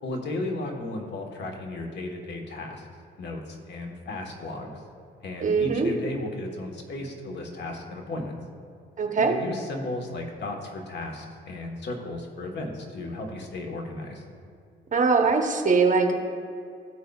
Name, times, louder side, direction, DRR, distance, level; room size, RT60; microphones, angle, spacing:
voice 1, 0.0-2.9 3.1-4.8 5.2-8.4 9.2-14.2, left 2 dB, 60° left, 2 dB, 1.3 m, -35 dB
voice 2, 5.4-5.9 9.0-9.3 14.9-16.1, right 4 dB, 40° right, 3 dB, 0.9 m, -21 dB
14.0 x 5.3 x 2.3 m, 2.4 s
cardioid pair, 90°, 20 cm